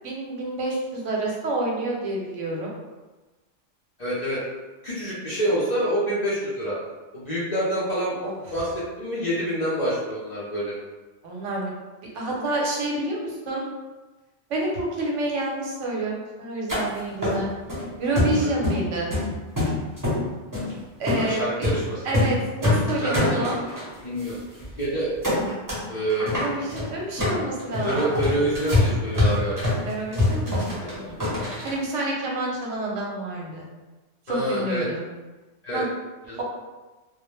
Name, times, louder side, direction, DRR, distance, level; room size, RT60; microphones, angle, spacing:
voice 1, 0.0-2.7 8.2-8.4 11.2-11.7 12.1-13.6 14.5-17.5 18.0-19.1 21.0-21.7 22.0-23.6 26.3-28.0 29.9-31.1 31.6-33.6 34.3-35.0 35.7-35.9, right 2 dB, 85° right, -2 dB, 1.0 m, -28 dB
voice 2, 4.0-4.4 4.8-6.8 7.1-8.1 8.5-8.7 9.0-10.7 18.4-18.5 21.2-22.0 23.0-23.5 24.0-24.4 24.8-25.1 25.9-26.3 27.8-29.7 34.3-34.9 35.6-35.8 36.3-36.4, right 1 dB, 45° left, -9 dB, 0.5 m, -27 dB
sound 1, 16.7-16.8 17.2-17.8 18.1-18.8 19.1-20.2 20.5-20.7 21.1-21.2 21.6-21.8 22.0-22.3 22.6-23.8 24.3-24.4 24.6-24.8 25.2-25.8 26.1-31.7, left 2 dB, 20° right, 0.7 m, -24 dB
2.2 x 2.1 x 3.0 m, 1.2 s
omnidirectional pair, 1.3 m